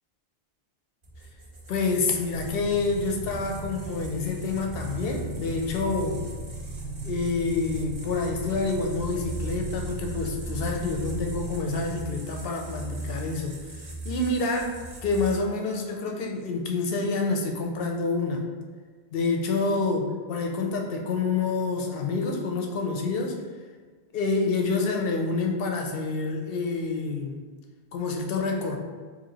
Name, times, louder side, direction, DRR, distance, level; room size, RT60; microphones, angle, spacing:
sound 1, 1.0-15.4, right 3 dB, 40° right, 0.5 m, -40 dB
voice 1, 1.7-6.2 7.0-13.6 14.0-18.4 19.1-23.4 24.1-27.4 27.9-28.8, left 3 dB, 65° left, 2 dB, 0.7 m, -27 dB
sound 2, 2.3-12.0, right 2 dB, 75° right, 0.8 m, -37 dB
2.9 x 2.8 x 4.0 m, 1.5 s
omnidirectional pair, 1.1 m